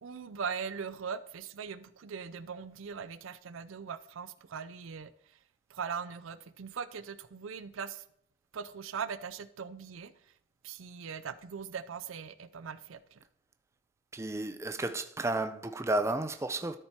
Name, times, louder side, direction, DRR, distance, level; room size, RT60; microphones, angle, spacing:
voice 1, 0.0-5.4 5.7-8.0 8.5-10.1 10.6-13.2, right 6 dB, 85° right, 0.5 m, -40 dB
voice 2, 14.1-16.8, right 2 dB, 15° right, 0.4 m, -32 dB
13.0 x 4.3 x 4.5 m
head